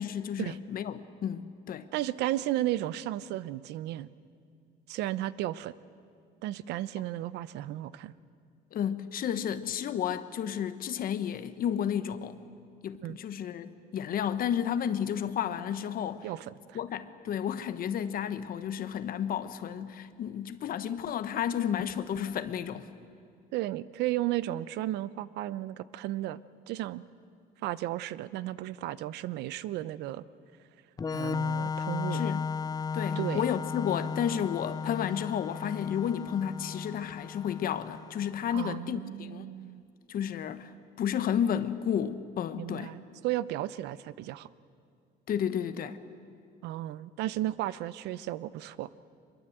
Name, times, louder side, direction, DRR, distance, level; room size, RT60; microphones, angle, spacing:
voice 1, 0.0-1.9 8.7-12.4 12.8-16.3 16.7-22.9 32.1-32.4 32.9-39.4 40.1-40.7 41.0-42.9 45.3-46.0, left 9 dB, 60° left, 11 dB, 1.2 m, -32 dB
voice 2, 1.9-4.1 4.9-5.7 6.4-8.1 13.0-13.2 16.2-16.8 23.5-26.4 26.7-27.0 27.6-30.3 31.1-32.2 33.2-33.5 38.5-39.8 42.6-44.5 46.6-48.9, right 14 dB, 85° right, 17 dB, 0.7 m, -34 dB
Organ, 31.0-38.5, left 5 dB, 20° left, 0.6 m, -35 dB
24.0 x 22.0 x 8.0 m, 2.3 s
cardioid pair, 110°, 17 cm